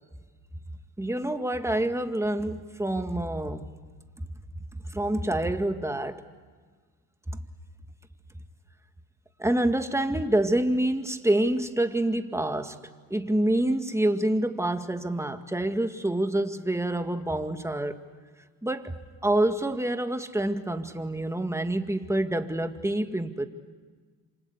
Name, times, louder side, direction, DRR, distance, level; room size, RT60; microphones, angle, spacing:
voice 1, 1.0-3.7 4.2-4.3 4.8-6.2 9.4-12.8 13.1-18.0 18.6-23.5, right 1 dB, 5° right, 7 dB, 2.0 m, -27 dB
28.0 x 25.5 x 8.4 m, 1.5 s
supercardioid pair, 70°, 47 cm